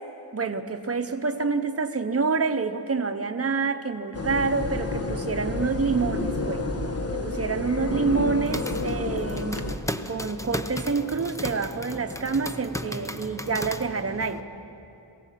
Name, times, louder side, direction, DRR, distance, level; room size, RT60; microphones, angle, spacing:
voice 1, 0.3-6.7 7.1-9.6 10.1-14.5, right 4 dB, 30° right, 7 dB, 1.0 m, -27 dB
sound 1, 4.1-9.8, left 2 dB, 30° left, 1.3 m, -29 dB
sound 2, 8.2-14.4, left 1 dB, 5° left, 0.7 m, -36 dB
22.5 x 16.5 x 7.6 m, 2.8 s
wide cardioid pair, 110°, 46 cm